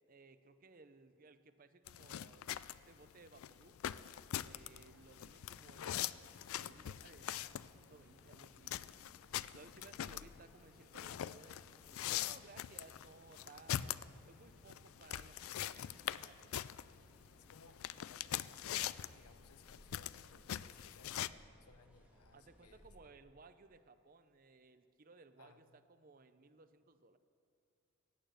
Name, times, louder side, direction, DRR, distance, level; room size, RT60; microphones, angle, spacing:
voice 1, 0.1-3.8 4.4-7.3 7.6-8.7 9.5-14.0 14.3-16.5 22.3-27.2, right 3 dB, 40° right, 11 dB, 0.6 m, -61 dB
sound 1, 1.9-21.3, left 11 dB, 70° left, 0.3 m, -43 dB
sound 2, 4.7-22.9, equal, 5° right, 2.1 m, -66 dB
voice 2, 17.4-18.6 19.0-22.9 25.4-25.8, left 4 dB, 90° left, 10 dB, 0.9 m, -64 dB
15.5 x 9.1 x 7.8 m, 2.6 s
head